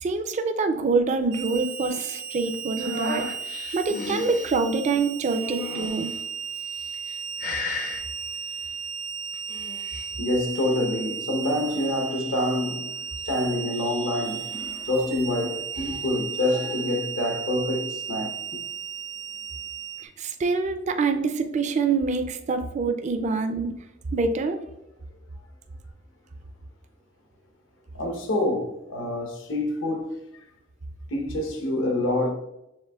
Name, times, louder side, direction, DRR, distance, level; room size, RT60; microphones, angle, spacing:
voice 1, 0.0-3.3 3.7-6.1 20.0-23.7 24.1-24.6, right 4 dB, 35° right, 0.4 m, -25 dB
Harmonica, 1.3-20.1, right 7 dB, 75° right, 0.9 m, -35 dB
sound 1, 2.8-4.5 5.3-6.2 6.8-7.1 7.4-8.0 9.3-10.1, left 3 dB, 45° left, 0.5 m, -34 dB
voice 2, 10.2-12.9 13.2-18.3 27.9-30.2 31.1-32.3, left 1 dB, 75° left, 0.9 m, -27 dB
6.5 x 3.5 x 2.3 m
head